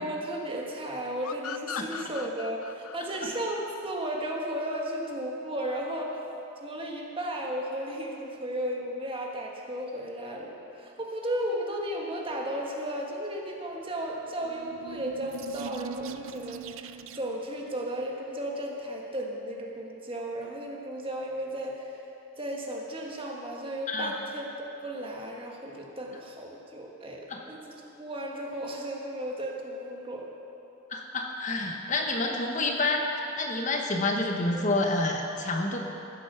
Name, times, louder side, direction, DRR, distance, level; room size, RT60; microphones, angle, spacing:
voice 1, 0.0-6.3 6.6-21.9 22.4-30.3, right 1 dB, 25° right, -1 dB, 1.5 m, -34 dB
sound 1, 1.2-4.6, left 8 dB, 90° left, 0.4 m, -40 dB
sound 2, 14.2-17.5, right 6 dB, 70° right, 0.4 m, -41 dB
voice 2, 30.9-33.1 33.4-35.8, left 2 dB, 35° left, 2 dB, 1.0 m, -28 dB
15.5 x 8.4 x 6.8 m, 2.9 s
head